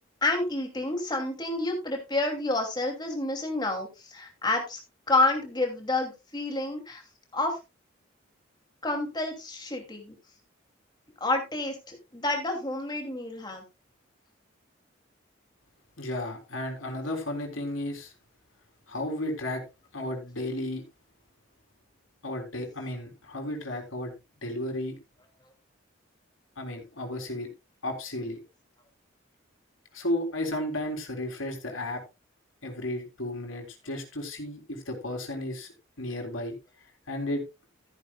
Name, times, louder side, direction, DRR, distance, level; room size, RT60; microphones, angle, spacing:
voice 1, 0.2-4.8 5.1-7.0 7.3-7.6 8.8-10.1 11.2-13.6, left 2 dB, 20° left, 2.7 m, -29 dB
voice 2, 16.0-18.1 18.9-19.6 19.9-20.8 22.2-24.1 24.4-25.0 26.6-27.5 27.8-28.4 29.9-32.0 32.6-35.7 36.0-36.5 37.1-37.4, left 1 dB, 80° left, 3.6 m, -33 dB
14.0 x 10.5 x 2.3 m
head